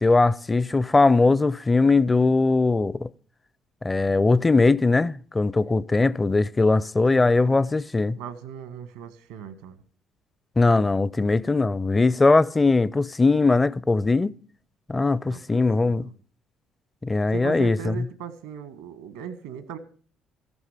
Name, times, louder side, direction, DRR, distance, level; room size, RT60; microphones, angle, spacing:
voice 1, 0.0-3.1 3.8-8.2 10.6-14.3 14.9-16.1 17.0-17.9, left 3 dB, 25° left, 0.6 m, -20 dB
voice 2, 7.1-7.6 8.1-9.8 15.3-16.1 17.3-19.8, right 8 dB, 85° right, 1.5 m, -38 dB
14.5 x 12.5 x 5.0 m
hypercardioid pair, 60°, 0 cm